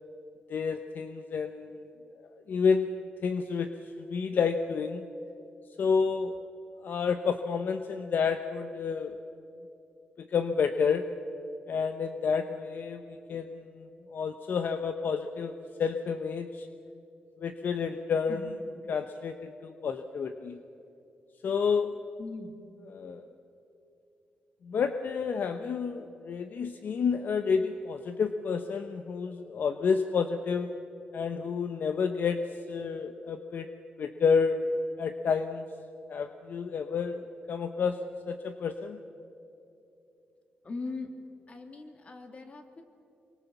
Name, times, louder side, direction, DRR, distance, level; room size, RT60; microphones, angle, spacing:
voice 1, 0.5-1.9 2.5-2.9 3.2-3.7 4.1-5.0 5.8-6.3 6.8-9.1 10.2-11.1 11.7-13.7 14.1-15.5 15.8-16.7 17.4-18.6 18.9-20.6 21.4-21.9 22.9-23.2 24.6-30.7 31.1-32.4 32.7-33.7 34.0-34.6 35.0-35.6 36.1-38.0 38.3-39.0, left 5 dB, 65° left, 8 dB, 1.0 m, -29 dB
voice 2, 22.2-22.5 40.6-41.1 41.5-42.8, left 3 dB, 40° left, 5 dB, 2.8 m, -40 dB
26.0 x 24.0 x 7.2 m, 2.8 s
cardioid pair, 85°, 4 cm